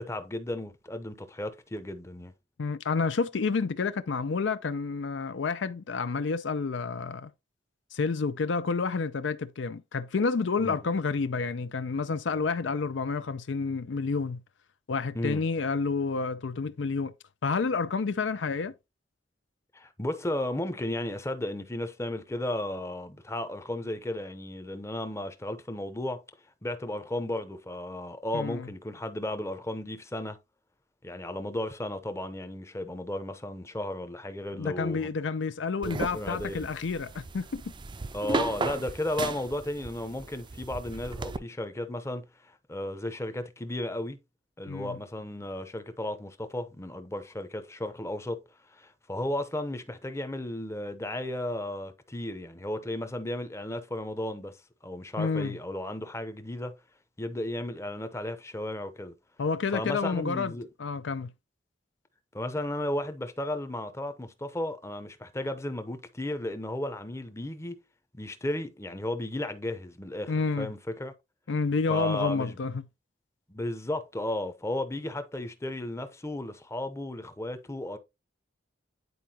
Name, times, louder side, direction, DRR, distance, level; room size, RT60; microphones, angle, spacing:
voice 1, 0.0-2.3 10.6-10.8 15.1-15.4 19.7-26.2 26.6-30.4 31.0-35.1 35.8-36.7 38.1-44.2 44.6-48.4 48.7-54.6 54.8-56.7 57.2-59.1 59.7-60.7 62.3-67.8 68.1-71.1 71.9-72.6 73.5-78.0, left 1 dB, 15° left, 0.7 m, -34 dB
voice 2, 2.6-7.3 7.9-14.4 14.9-17.1 17.4-18.7 28.3-28.7 34.6-37.7 44.7-45.0 55.2-55.6 59.4-60.5 60.8-61.3 70.3-70.7 71.5-72.8, left 4 dB, 75° left, 0.5 m, -29 dB
sound 1, 35.8-41.4, right 3 dB, 25° right, 0.5 m, -35 dB
9.4 x 4.6 x 2.8 m
head